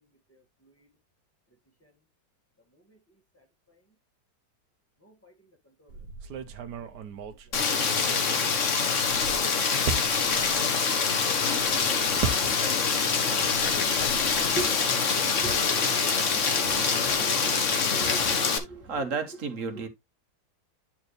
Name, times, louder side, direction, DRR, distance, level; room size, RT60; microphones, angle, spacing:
voice 1, 5.0-5.3 5.8-5.9 11.1-18.9, right 3 dB, 10° left, 1.7 m, -41 dB
sound 1, 5.9-8.6 8.9-13.0 13.3-14.6, right 5 dB, 85° right, 1.5 m, -37 dB
Rain, 7.5-18.6, left 5 dB, 50° left, 1.4 m, -25 dB
voice 2, 18.7-19.9, right 4 dB, 50° right, 1.5 m, -32 dB
10.0 x 4.5 x 3.2 m
omnidirectional pair, 1.8 m